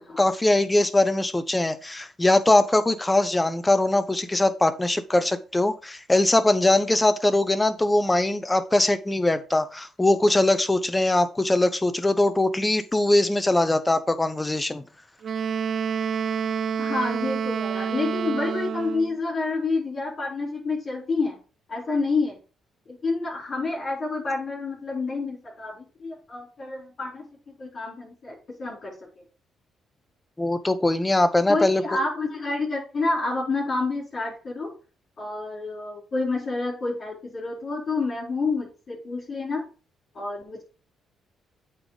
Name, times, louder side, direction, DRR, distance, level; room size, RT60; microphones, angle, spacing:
voice 1, 0.2-14.8 30.4-31.8, left 2 dB, 15° left, 11 dB, 0.9 m, -21 dB
Wind instrument woodwind instrument, 15.2-19.2, right 7 dB, 55° right, 0.5 m, -28 dB
voice 2, 16.8-21.4 21.7-22.4 22.9-27.3 27.6-28.9 31.5-34.7 35.2-39.7 40.1-40.6, left 3 dB, 45° left, -4 dB, 4.2 m, -28 dB
8.6 x 4.2 x 5.0 m, 0.35 s
cardioid pair, 90°, 0 cm